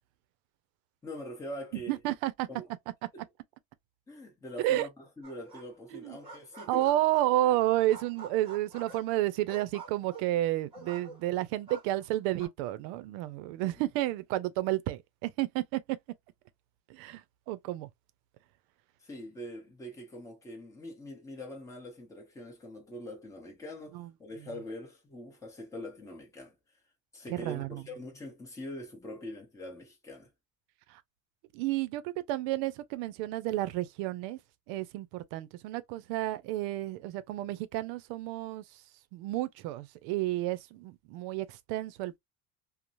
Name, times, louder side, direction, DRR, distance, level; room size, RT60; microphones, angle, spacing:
voice 1, 1.0-1.9 2.5-2.7 3.1-3.2 4.1-6.9 7.4-7.6 19.0-26.6 27.1-30.3, equal, 10° left, 0.7 m, -43 dB
voice 2, 1.9-2.5 4.6-4.9 5.9-6.2 6.7-15.8 16.9-17.9 23.9-24.1 27.3-27.8 30.9-31.0 31.5-34.4 34.7-38.8 39.1-42.2, right 15 dB, 80° right, 0.5 m, -31 dB
sound 1, 5.2-5.8 6.1-7.5 7.9-11.4 11.7-12.5, right 4 dB, 15° right, 1.2 m, -48 dB
3.0 x 2.0 x 2.4 m
cardioid pair, 175°, 38 cm